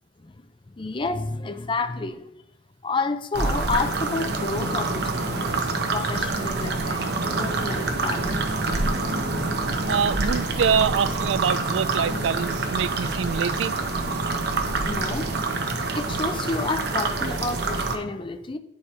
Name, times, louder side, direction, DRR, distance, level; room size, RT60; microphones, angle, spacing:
voice 1, 0.8-2.3 2.8-5.5 5.9-8.5 14.8-15.3 15.9-18.6, left 3 dB, 25° left, 0.5 m, -30 dB
sound 1, 3.3-18.0, right 3 dB, 60° right, 1.0 m, -26 dB
voice 2, 9.9-13.7, right 7 dB, 80° right, 0.3 m, -25 dB
11.0 x 4.8 x 4.3 m
head